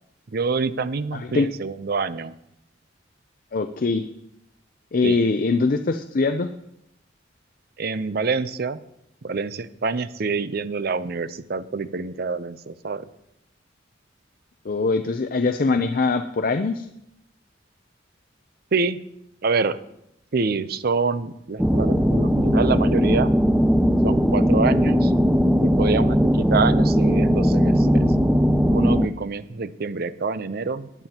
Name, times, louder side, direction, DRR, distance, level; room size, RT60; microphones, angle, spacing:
voice 1, 0.3-2.3 5.0-5.2 7.8-8.8 9.2-13.1 18.7-19.0 19.4-19.8 20.3-23.3 24.0-25.1 25.6-28.1 28.7-31.1, right 4 dB, 55° right, 14 dB, 0.6 m, -26 dB
voice 2, 1.1-1.5 3.5-4.1 4.9-6.5 14.7-16.9, left 3 dB, 50° left, 8 dB, 0.5 m, -22 dB
sound 1, 21.6-29.1, equal, 5° right, 0.4 m, -19 dB
19.0 x 9.1 x 2.9 m, 0.81 s
head